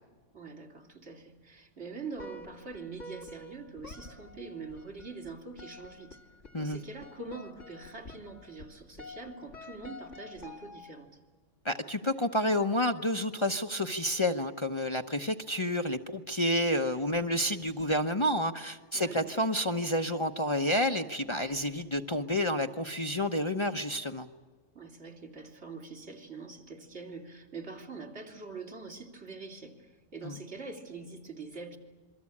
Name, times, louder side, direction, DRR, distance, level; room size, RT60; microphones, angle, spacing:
voice 1, 0.3-6.2 6.6-11.1 18.9-19.5 24.7-31.8, right 4 dB, 65° right, 2 dB, 3.3 m, -44 dB
sound 1, 2.2-11.1, left 2 dB, 85° left, 2.3 m, -49 dB
voice 2, 11.6-24.3 30.2-30.4, left 1 dB, 25° left, 6 dB, 0.9 m, -29 dB
27.0 x 23.0 x 8.6 m, 1.4 s
omnidirectional pair, 1.2 m